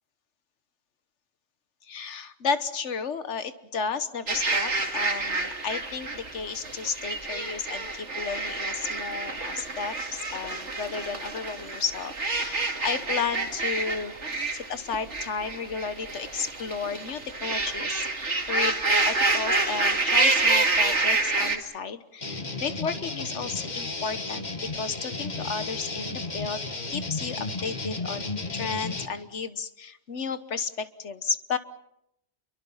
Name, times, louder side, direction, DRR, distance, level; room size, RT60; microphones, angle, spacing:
voice 1, 1.8-14.1 14.5-18.8 19.0-26.6 26.9-31.6, left 5 dB, 85° left, 11 dB, 1.6 m, -33 dB
sound 1, 4.3-21.6, right 3 dB, 85° right, 2.7 m, -28 dB
sound 2, 22.2-29.1, left 3 dB, 40° left, 2.0 m, -33 dB
29.0 x 23.5 x 5.7 m, 0.77 s
omnidirectional pair, 1.2 m